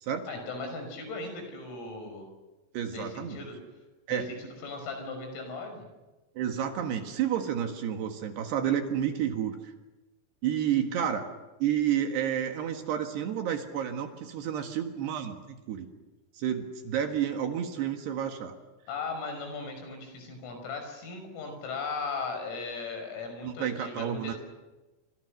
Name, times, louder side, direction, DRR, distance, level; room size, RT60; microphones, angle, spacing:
voice 1, 0.3-2.3 2.9-3.6 4.1-5.9 18.9-24.4, left 3 dB, 85° left, 5 dB, 8.5 m, -37 dB
voice 2, 2.7-3.4 4.1-4.3 6.4-9.7 10.4-11.2 11.6-15.9 16.4-18.6 23.4-24.3, right 9 dB, 65° right, 5 dB, 3.3 m, -30 dB
28.0 x 27.0 x 6.5 m, 1.1 s
omnidirectional pair, 5.9 m